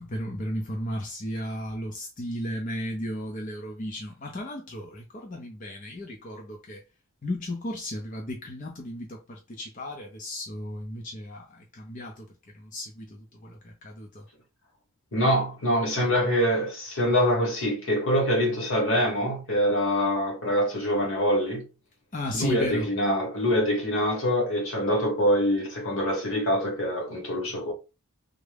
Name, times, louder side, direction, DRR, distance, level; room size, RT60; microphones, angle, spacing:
voice 1, 0.0-6.8 7.2-12.2 12.5-14.2 22.1-22.9, left 1 dB, 35° left, 0.5 m, -35 dB
voice 2, 15.1-21.6 22.3-27.7, equal, 65° left, 1.2 m, -25 dB
3.6 x 2.1 x 3.3 m
head